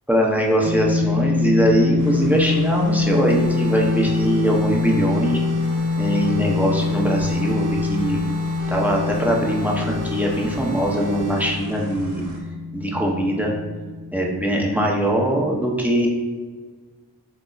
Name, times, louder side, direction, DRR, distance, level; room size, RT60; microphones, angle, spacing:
voice 1, 0.1-5.4 6.0-8.2 8.7-12.2 12.7-13.5 14.1-16.1, right 1 dB, 5° right, -1 dB, 0.8 m, -21 dB
sound 1, 0.6-15.1, left 4 dB, 30° left, 0.9 m, -25 dB
sound 2, 2.0-12.4, right 1 dB, 45° right, 1.0 m, -42 dB
sound 3, 3.3-11.5, left 1 dB, 70° right, 1.1 m, -35 dB
7.8 x 2.7 x 2.4 m, 1.5 s
wide cardioid pair, 65°, 41 cm